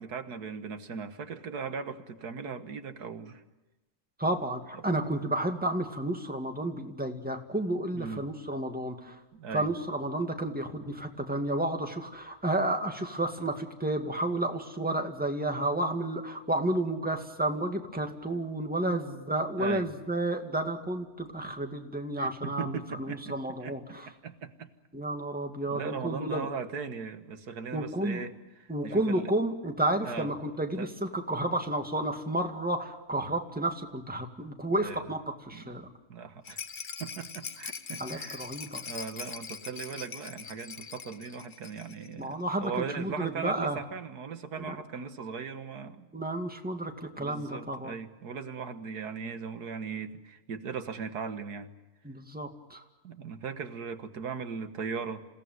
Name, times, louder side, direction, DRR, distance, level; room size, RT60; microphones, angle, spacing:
voice 1, 0.0-3.4 4.7-4.8 7.9-8.2 9.3-9.7 19.6-19.9 22.2-23.3 23.6-24.7 25.7-29.3 30.0-30.3 30.8-30.9 34.7-35.1 35.5-35.7 36.1-36.6 37.0-38.5 38.9-46.1 47.2-51.7 53.0-55.3, right 6 dB, 85° right, 9 dB, 1.9 m, -38 dB
voice 2, 4.2-9.2 9.5-24.1 24.9-26.5 27.7-28.2 28.7-35.9 38.0-38.8 42.2-42.7 43.0-43.8 44.6-44.8 46.1-47.9 52.0-52.8, right 1 dB, 5° right, 4 dB, 2.1 m, -31 dB
Rattle, 36.4-42.1 42.4-42.5 42.8-42.9, left 6 dB, 40° left, 0.9 m, -42 dB
28.0 x 17.5 x 9.4 m, 1.1 s
omnidirectional pair, 1.6 m